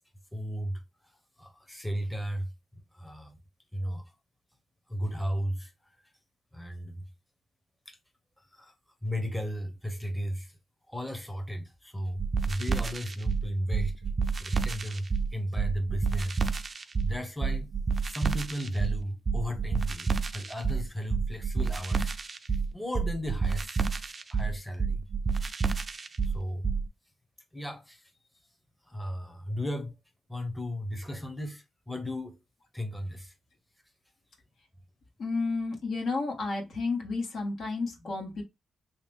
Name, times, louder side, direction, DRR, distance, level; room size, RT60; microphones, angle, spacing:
voice 1, 0.3-0.8 1.4-2.5 2.9-3.4 3.7-4.1 4.9-6.0 6.5-7.0 7.9-8.0 8.4-8.7 9.0-10.6 10.9-14.0 14.4-16.4 16.8-17.7 18.0-22.1 22.5-25.0 26.2-26.7 27.5-28.1 28.8-30.0 30.3-32.4 32.7-33.3, equal, 5° left, 0.9 m, -35 dB
sound 1, 12.2-26.9, right 5 dB, 40° right, 0.4 m, -29 dB
voice 2, 35.2-38.4, left 3 dB, 70° left, 1.4 m, -31 dB
3.3 x 2.9 x 3.3 m
cardioid pair, 80°, 0 cm